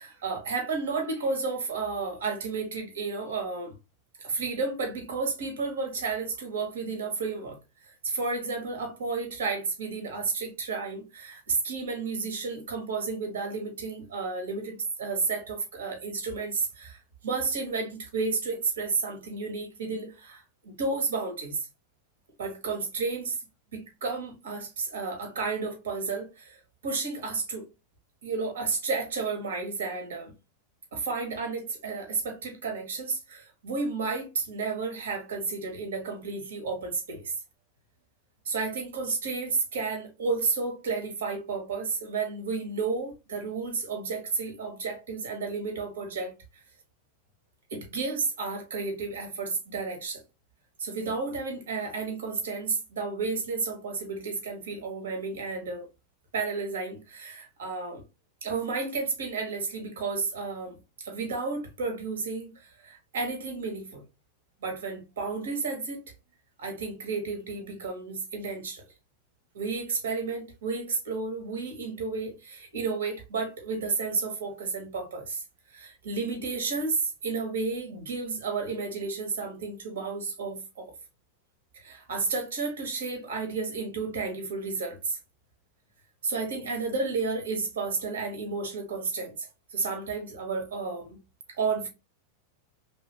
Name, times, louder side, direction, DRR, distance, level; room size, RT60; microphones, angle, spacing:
voice 1, 0.0-3.8 4.2-7.6 8.0-21.6 22.4-23.4 23.7-27.6 28.2-30.3 30.9-37.3 38.4-46.6 47.7-50.2 50.8-55.9 56.3-58.0 58.4-64.0 64.6-66.0 66.6-68.8 69.5-75.4 75.7-80.9 81.7-85.2 86.2-91.2 91.5-91.9, right 4 dB, 85° right, 1.1 m, -32 dB
3.2 x 2.6 x 2.8 m
hypercardioid pair, 110°, 0 cm